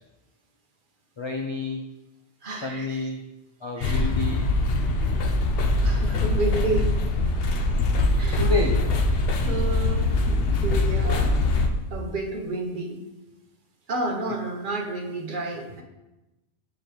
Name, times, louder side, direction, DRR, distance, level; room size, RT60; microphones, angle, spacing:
voice 1, 1.2-1.9 2.6-3.2 3.6-4.4 8.4-8.8, left 3 dB, 50° left, 2 dB, 0.3 m, -29 dB
voice 2, 2.4-3.1 3.8-4.1 5.8-6.9 8.2-8.5 9.4-11.4 11.9-13.0 13.9-15.8, right 2 dB, 55° right, 2 dB, 0.9 m, -31 dB
sound 1, 3.8-11.7, left 2 dB, 65° left, 0.8 m, -23 dB
6.6 x 5.0 x 3.0 m, 1.0 s
omnidirectional pair, 1.1 m